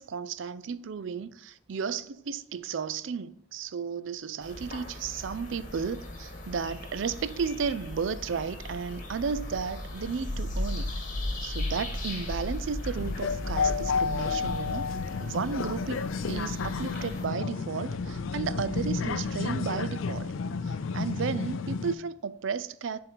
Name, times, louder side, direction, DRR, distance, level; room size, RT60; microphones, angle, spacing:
voice 1, 0.0-10.9 11.4-14.9 15.2-16.0 16.3-20.3 20.6-23.0, right 6 dB, 70° right, 0.4 m, -33 dB
sound 1, 4.4-17.3, left 1 dB, 40° left, 1.8 m, -37 dB
sound 2, 12.9-21.9, left 5 dB, 80° left, 0.5 m, -31 dB
sound 3, 17.8-20.8, equal, 10° left, 2.5 m, -52 dB
7.8 x 3.7 x 4.6 m
head